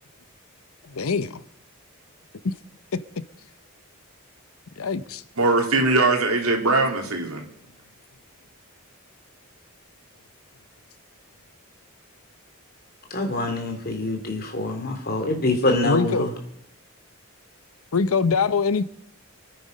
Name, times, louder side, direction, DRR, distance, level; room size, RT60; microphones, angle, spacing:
voice 1, 0.8-1.4 2.4-2.5 4.8-5.2 15.8-16.3 17.9-18.8, left 5 dB, 85° left, 0.8 m, -23 dB
voice 2, 5.4-7.5, right 3 dB, 90° right, 2.8 m, -21 dB
voice 3, 13.1-16.3, left 2 dB, 45° left, 2.7 m, -25 dB
25.5 x 9.4 x 5.2 m
head